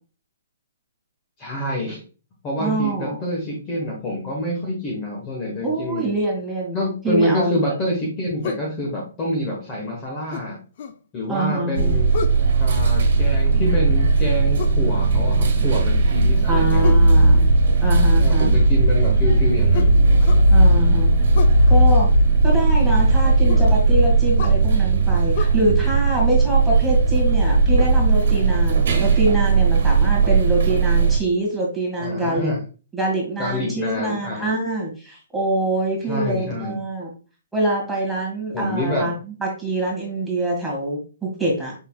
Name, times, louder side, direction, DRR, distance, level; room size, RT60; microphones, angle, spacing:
voice 1, 1.4-2.0 2.4-6.0 6.7-10.6 11.1-12.1 12.6-16.8 18.1-19.9 32.0-32.6 33.4-34.5 36.1-36.8 38.5-39.1, left 1 dB, 20° left, -2 dB, 1.3 m, -26 dB
voice 2, 2.6-3.2 5.6-6.8 7.0-7.5 11.3-11.9 16.5-17.5 17.8-18.5 20.5-21.1 21.7-22.1 22.4-32.5 32.9-37.1 37.5-41.7, right 2 dB, ahead, -5 dB, 1.9 m, -25 dB
sound 1, 8.4-8.7 10.3-11.0 12.1-12.5 14.6-14.8 16.8-17.1 19.7-20.5 21.3-21.6 23.5-23.7 24.4-24.6 25.3-25.5, left 7 dB, 45° left, 0.5 m, -30 dB
sound 2, 11.8-31.2, right 3 dB, 60° right, 1.4 m, -17 dB
5.5 x 4.1 x 2.3 m, 0.36 s
hypercardioid pair, 155°, 0 cm